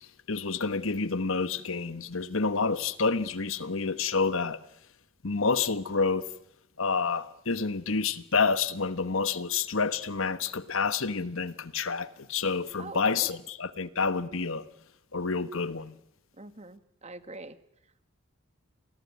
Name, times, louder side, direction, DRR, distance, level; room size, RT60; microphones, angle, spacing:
voice 1, 0.3-4.6 5.2-6.3 6.8-14.6 15.1-16.0, left 4 dB, 65° left, 1.2 m, -28 dB
voice 2, 12.8-13.4 16.3-17.6, right 2 dB, 30° right, 1.5 m, -44 dB
29.0 x 20.5 x 9.7 m
head